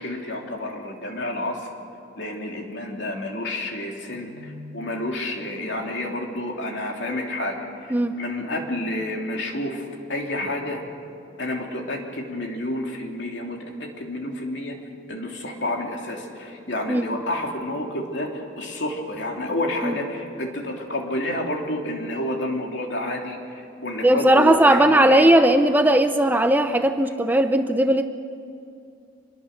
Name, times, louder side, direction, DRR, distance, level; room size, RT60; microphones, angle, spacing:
voice 1, 0.0-1.7 2.2-7.6 8.2-10.8 11.4-14.7 15.1-23.4 23.8-25.3, left 1 dB, 65° left, 1 dB, 3.0 m, -29 dB
voice 2, 24.0-28.1, right 1 dB, 10° right, 7 dB, 0.7 m, -18 dB
26.0 x 21.5 x 6.7 m, 2.5 s
head